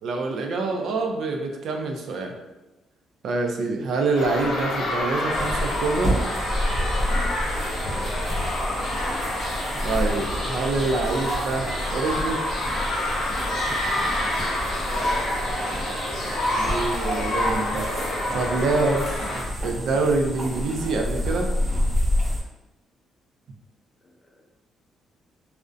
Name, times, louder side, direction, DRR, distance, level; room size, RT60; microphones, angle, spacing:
voice 1, 0.0-2.3 3.2-6.2 9.8-12.4 16.2-17.9 18.3-19.1 19.3-21.5, right 3 dB, 70° right, 2 dB, 0.3 m, -26 dB
sound 1, 4.1-19.4, left 1 dB, 80° left, 0.6 m, -28 dB
sound 2, 5.3-22.4, equal, 40° right, 0.8 m, -29 dB
voice 2, 7.5-8.0 14.2-14.5 24.0-24.4, left 1 dB, 30° left, 0 dB, 0.5 m, -48 dB
2.5 x 2.0 x 2.4 m, 1.0 s
cardioid pair, 90°, 0 cm